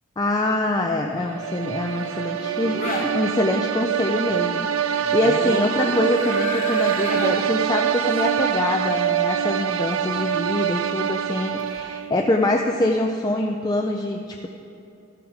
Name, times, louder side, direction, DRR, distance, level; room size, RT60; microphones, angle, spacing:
voice 1, 0.2-14.5, left 1 dB, 20° left, 2 dB, 0.4 m, -24 dB
sound 1, 1.3-12.2, right 9 dB, 70° right, 0.4 m, -25 dB
sound 2, 1.8-3.1 5.0-7.6 11.6-11.8, left 2 dB, 35° left, 1.0 m, -31 dB
13.5 x 7.1 x 4.8 m, 2.7 s
head